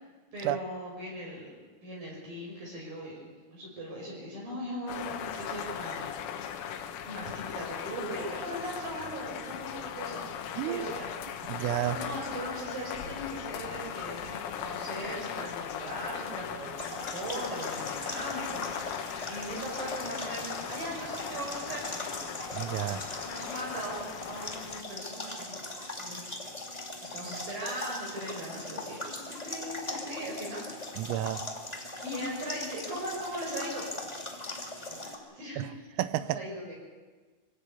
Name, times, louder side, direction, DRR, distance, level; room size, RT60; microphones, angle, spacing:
voice 1, 0.3-6.1 7.0-11.1 11.9-22.1 23.2-25.6 26.0-26.4 27.1-30.6 32.0-33.9 34.9-35.8 36.2-36.8, right 1 dB, 45° right, -3 dB, 6.8 m, -39 dB
sound 1, 4.9-24.8, left 8 dB, 85° left, 4.2 m, -38 dB
voice 2, 10.6-10.9 11.5-12.0 22.5-23.0 31.0-31.4 35.6-35.7 36.0-36.4, right 14 dB, 85° right, 13 dB, 3.5 m, -31 dB
sound 2, 16.8-35.2, left 1 dB, 40° left, 0.5 m, -40 dB
24.5 x 16.0 x 8.4 m, 1.4 s
omnidirectional pair, 5.9 m